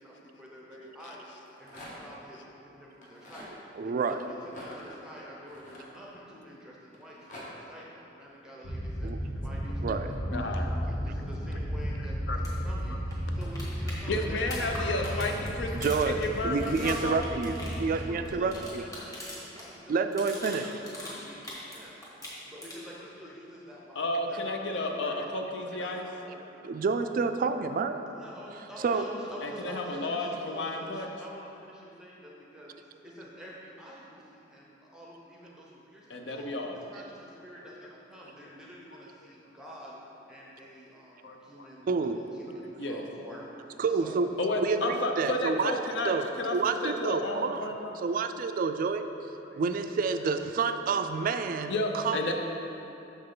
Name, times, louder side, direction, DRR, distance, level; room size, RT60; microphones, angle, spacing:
voice 1, 0.0-1.3 1.6-9.1 9.4-15.3 17.6-20.2 20.5-22.0 22.4-26.6 28.1-40.0 40.3-43.5 43.9-44.3, equal, 5° right, -4 dB, 0.6 m, -48 dB
Rattle, 1.3-2.2 2.9-3.5 4.4-6.4 6.9-7.5, left 1 dB, 45° left, 1.0 m, -47 dB
voice 2, 3.8-4.2 9.0-9.2 9.8-10.1 15.7-18.8 19.9-20.7 26.6-28.0 28.8-29.1 41.9-42.2 43.8-44.3 44.6-45.7 46.1-47.7 48.0-49.1 49.6-52.3, right 4 dB, 45° right, 8 dB, 0.3 m, -29 dB
sound 1, 8.6-18.7, equal, 85° left, 1.4 m, -34 dB
voice 3, 10.3-10.7 12.3-12.4 14.1-16.0 16.2-17.2 24.0-26.1 29.4-31.1 36.1-36.8 41.2-41.7 42.8-43.0 44.4-46.1 46.4-47.9 49.4-49.6 50.7-50.8 51.7-52.3, left 2 dB, 65° left, 3 dB, 0.6 m, -32 dB
sound 2, 12.4-12.5 12.8-12.9 13.1-19.7 19.9-21.8 22.0-23.0 25.0-25.1, left 1 dB, 20° left, 1.4 m, -42 dB
6.4 x 5.4 x 3.8 m, 2.9 s
head